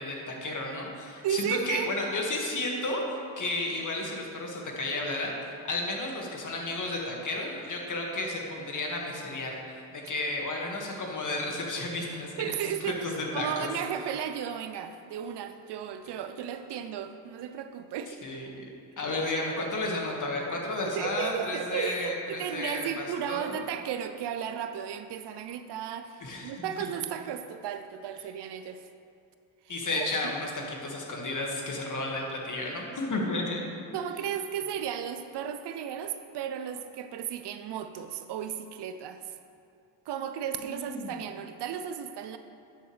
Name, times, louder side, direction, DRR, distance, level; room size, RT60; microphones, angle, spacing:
voice 1, 0.0-5.4 5.6-12.5 12.8-13.7 16.0-16.1 18.2-18.6 19.0-23.6 26.2-26.5 29.7-33.6 40.6-41.1, left 2 dB, 40° left, -1 dB, 1.8 m, -32 dB
voice 2, 1.2-1.9 12.4-13.0 13.3-18.2 20.8-28.9 30.0-30.1 33.9-39.3 40.1-42.4, right 9 dB, 65° right, 9 dB, 0.6 m, -34 dB
11.5 x 6.6 x 3.3 m, 2.4 s
cardioid pair, 75°, 45 cm